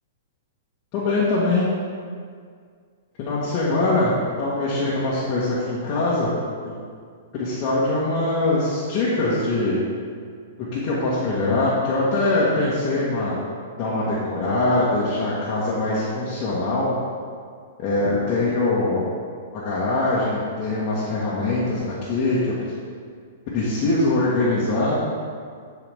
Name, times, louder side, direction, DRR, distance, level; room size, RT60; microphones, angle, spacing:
voice 1, 0.9-1.6 3.2-6.3 6.6-6.7 7.3-9.8 10.7-13.4 13.8-16.9 17.8-19.1 19.5-21.8 22.1-22.4 23.5-25.0, left 2 dB, 30° left, -9 dB, 1.6 m, -22 dB
14.0 x 4.7 x 3.6 m, 2.1 s
hypercardioid pair, 165°, 0 cm